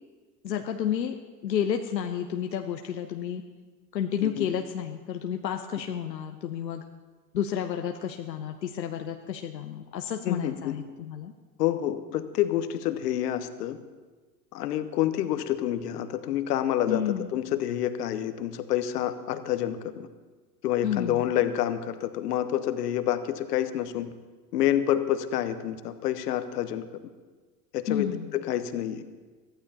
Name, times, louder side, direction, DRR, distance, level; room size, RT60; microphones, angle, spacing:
voice 1, 0.4-1.2 1.4-3.4 3.9-6.9 7.3-11.3 16.9-17.3 20.8-21.2 27.9-28.3, left 9 dB, 85° left, 5 dB, 0.8 m, -31 dB
voice 2, 10.2-10.8 11.6-13.8 14.5-20.1 20.6-24.1 24.5-26.9 27.7-29.0, left 11 dB, 70° left, 11 dB, 1.1 m, -28 dB
22.5 x 14.5 x 2.9 m, 1.4 s
hypercardioid pair, 85°, 50 cm